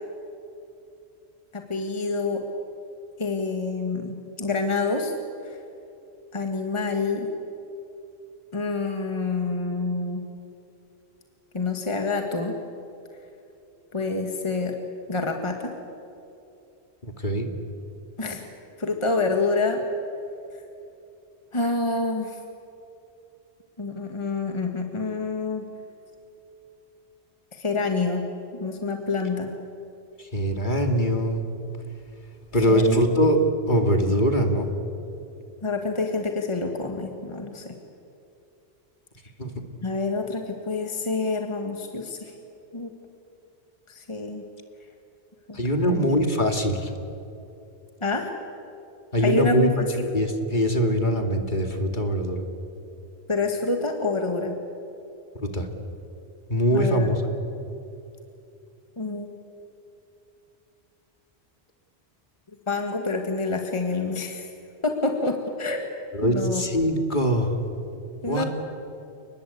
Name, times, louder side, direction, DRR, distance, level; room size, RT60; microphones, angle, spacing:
voice 1, 1.5-2.4 3.2-5.1 5.4-5.6 6.3-7.3 8.5-10.2 11.5-12.5 13.9-14.7 15.1-15.7 18.2-18.4 18.8-19.8 21.5-22.4 23.8-25.6 27.5-28.2 28.5-29.5 32.7-33.0 35.6-37.8 39.8-42.3 42.7-42.9 43.9-44.4 45.5-45.6 45.9-46.1 48.0-48.3 49.2-49.7 50.0-50.1 53.3-54.6 56.7-57.1 59.0-59.3 62.7-64.5 64.8-65.9 66.2-66.6 68.2-68.4, left 3 dB, 25° left, 3 dB, 1.8 m, -27 dB
voice 2, 17.0-17.5 30.2-31.4 32.5-33.4 33.7-34.7 39.4-39.5 45.5-46.9 49.1-52.4 55.4-55.7 56.5-57.2 66.1-67.5 68.2-68.4, equal, 45° left, 4 dB, 2.5 m, -22 dB
29.5 x 20.5 x 8.6 m, 2.8 s
omnidirectional pair, 1.1 m